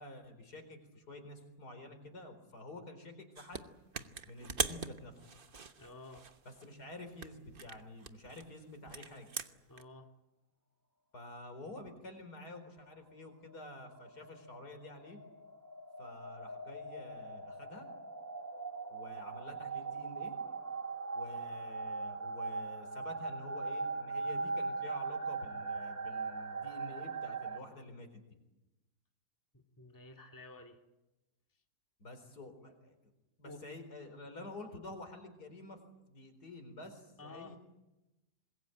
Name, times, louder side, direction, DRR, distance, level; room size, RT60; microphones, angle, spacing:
voice 1, 0.0-3.7 4.3-5.1 6.4-9.3 11.1-15.2 16.0-17.9 18.9-20.3 21.1-28.2 32.0-33.0 33.4-35.8 36.1-37.6, left 2 dB, 70° left, 7 dB, 4.8 m, -49 dB
sound 1, 3.3-3.6 3.9-6.7 7.2-9.8, right 5 dB, 35° right, 1.1 m, -41 dB
voice 2, 5.8-6.3 9.7-10.1 29.5-30.8 33.4-33.8 37.2-37.6, left 2 dB, 10° left, 3 dB, 2.0 m, -52 dB
sound 2, 13.5-27.6, right 4 dB, 10° right, 1.2 m, -40 dB
26.0 x 21.5 x 9.1 m, 1.0 s
omnidirectional pair, 1.7 m